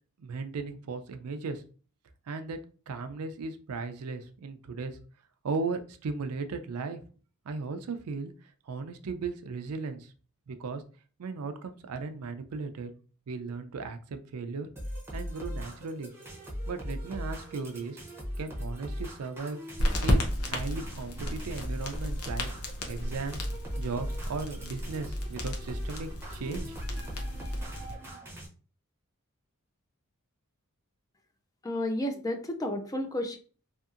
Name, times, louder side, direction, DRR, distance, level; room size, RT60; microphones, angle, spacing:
voice 1, 0.2-1.6 2.3-2.6 2.9-5.0 5.4-7.0 7.5-8.3 8.7-10.1 10.5-10.8 11.2-12.9 13.3-14.7 15.1-16.1 16.7-18.0 18.4-19.6 20.0-22.5 22.9-23.4 23.8-27.0, right 4 dB, 85° right, 9 dB, 0.4 m, -36 dB
sound 1, 14.8-28.5, equal, 10° right, 0.7 m, -39 dB
sound 2, 19.8-27.9, left 1 dB, 85° left, 0.7 m, -33 dB
voice 2, 31.6-33.4, left 1 dB, 15° left, 6 dB, 0.3 m, -31 dB
2.8 x 2.7 x 2.4 m, 0.38 s
head